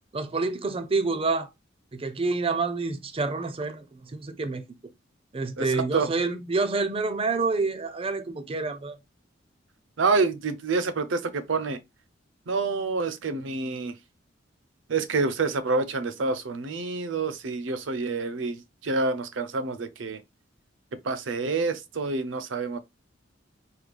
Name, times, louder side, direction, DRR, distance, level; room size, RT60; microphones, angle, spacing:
voice 1, 0.1-1.5 1.9-4.6 5.3-9.0, right 3 dB, 30° right, 0.5 m, -28 dB
voice 2, 5.6-6.1 10.0-11.8 12.5-14.0 14.9-20.2 21.0-22.8, right 3 dB, 80° right, 0.6 m, -27 dB
4.8 x 2.3 x 3.3 m
head